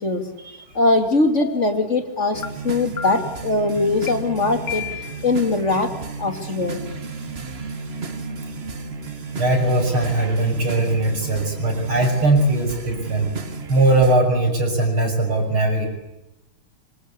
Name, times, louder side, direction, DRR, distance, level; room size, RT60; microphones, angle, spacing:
voice 1, 0.7-4.8 5.2-5.9 6.2-6.8, left 2 dB, 35° left, 6 dB, 3.1 m, -21 dB
sound 1, 0.9-1.0 1.4-1.8 2.4-2.5 3.0-3.4 4.1-4.2 4.7-5.3, left 9 dB, 55° left, 1.8 m, -32 dB
sound 2, 2.3-14.1, right 4 dB, 30° right, 1.6 m, -33 dB
voice 2, 9.3-13.3 13.7-15.9, right 2 dB, 90° right, 4 dB, 7.2 m, -20 dB
26.0 x 25.5 x 8.5 m, 0.94 s
omnidirectional pair, 2.3 m